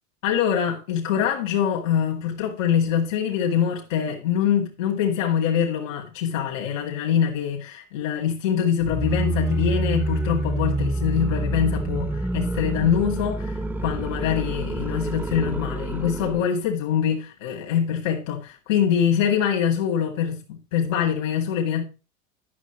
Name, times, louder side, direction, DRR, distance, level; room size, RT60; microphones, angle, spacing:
voice 1, 0.2-21.8, left 8 dB, 85° left, 2.1 m, -24 dB
sound 1, 8.8-16.5, right 2 dB, 5° right, 0.4 m, -27 dB
11.0 x 6.2 x 4.5 m
supercardioid pair, 100°, 37 cm